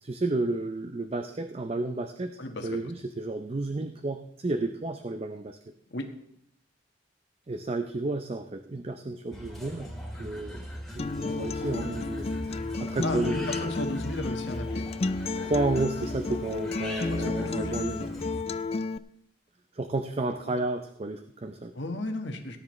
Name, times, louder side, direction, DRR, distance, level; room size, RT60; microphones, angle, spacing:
voice 1, 0.0-5.6 7.5-9.9 10.2-10.7 10.9-12.3 12.8-13.7 15.4-18.2 19.7-21.7, right 2 dB, 35° right, 7 dB, 0.5 m, -32 dB
voice 2, 2.4-2.7 5.9-6.1 13.0-14.9 15.4-15.5 17.1-17.7 21.7-22.6, left 1 dB, 70° left, 4 dB, 1.5 m, -35 dB
sound 1, 9.3-18.4, equal, ahead, 2.1 m, -40 dB
Acoustic guitar, 11.0-19.0, left 3 dB, 35° left, 0.4 m, -32 dB
18.0 x 9.7 x 3.2 m, 0.72 s
head